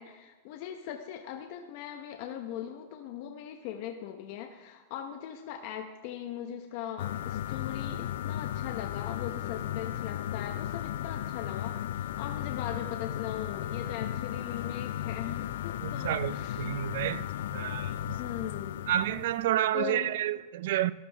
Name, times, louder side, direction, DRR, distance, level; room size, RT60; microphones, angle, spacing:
voice 1, 0.0-16.7 18.2-18.9 19.7-20.2, left 10 dB, 50° left, 0.9 m, -40 dB
sound 1, 7.0-19.5, left 11 dB, 75° left, 0.4 m, -35 dB
voice 2, 15.8-17.3 17.5-18.2 18.9-20.9, right 12 dB, 65° right, 0.4 m, -30 dB
13.0 x 12.5 x 3.5 m
supercardioid pair, 160°, 0 cm